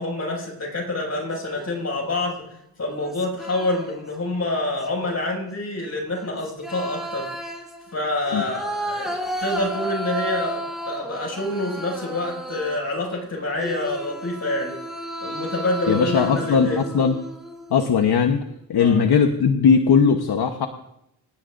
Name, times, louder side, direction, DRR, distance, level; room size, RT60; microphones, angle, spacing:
voice 1, 0.0-2.4 2.8-7.3 7.9-10.6 10.9-14.8 15.2-16.9 18.8-19.1, left 2 dB, 40° left, -2 dB, 6.5 m, -27 dB
sound 1, 1.1-1.9 2.9-4.1 4.5-5.1 6.1-13.0 13.6-17.9, right 1 dB, ahead, 3.4 m, -33 dB
voice 2, 15.9-17.1 17.7-18.4 18.7-20.7, left 6 dB, 70° left, 5 dB, 1.1 m, -18 dB
26.5 x 17.0 x 2.6 m, 0.80 s
wide cardioid pair, 120°, 40 cm